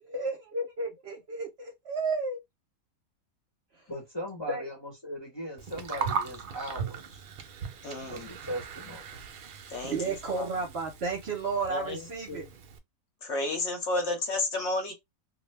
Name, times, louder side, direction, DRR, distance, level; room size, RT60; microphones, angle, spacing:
voice 1, 0.0-2.4 4.5-4.6 8.0-8.2 9.8-12.4, right 3 dB, 55° right, 0.8 m, -33 dB
voice 2, 3.9-7.2 8.1-9.0, equal, 25° left, 0.7 m, -38 dB
Gurgling, 5.6-12.8, right 6 dB, 80° right, 0.4 m, -39 dB
voice 3, 7.8-8.2 9.7-10.4 11.7-12.5 13.2-14.9, left 2 dB, 55° left, 1.0 m, -32 dB
2.5 x 2.1 x 3.1 m
omnidirectional pair, 1.5 m